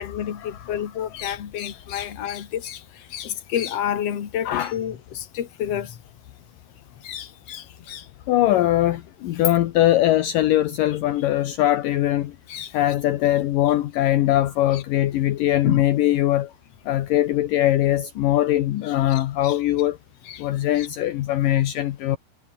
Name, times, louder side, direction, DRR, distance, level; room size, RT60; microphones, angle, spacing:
voice 1, 0.0-2.8 3.1-5.9 7.0-8.0 12.5-12.7 14.7-14.8 15.6-15.8 19.1-19.6 20.3-20.4 20.8-20.9, left 9 dB, 50° left, 2.9 m, -30 dB
voice 2, 8.3-12.4 12.7-16.5 16.9-20.0 20.4-22.2, left 14 dB, 70° left, 2.6 m, -21 dB
omnidirectional pair, 4.2 m